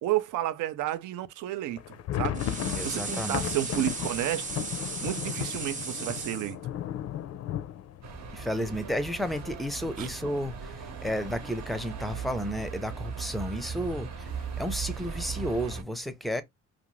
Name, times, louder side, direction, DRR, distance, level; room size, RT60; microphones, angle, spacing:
voice 1, 0.0-1.8 2.2-2.4 2.8-4.7 5.0-6.6 10.0-10.1, right 13 dB, 85° right, 0.5 m, -31 dB
sound 1, 1.7-9.4 9.8-9.9 10.1-10.4 10.9-11.4, left 10 dB, 55° left, 0.4 m, -35 dB
sound 2, 2.3-6.5, right 4 dB, 25° right, 0.8 m, -36 dB
voice 2, 2.8-3.5 8.3-16.4, equal, ahead, 0.5 m, -32 dB
sound 3, 8.0-15.8, right 6 dB, 65° right, 0.9 m, -38 dB
2.5 x 2.4 x 3.0 m
cardioid pair, 90°, 30 cm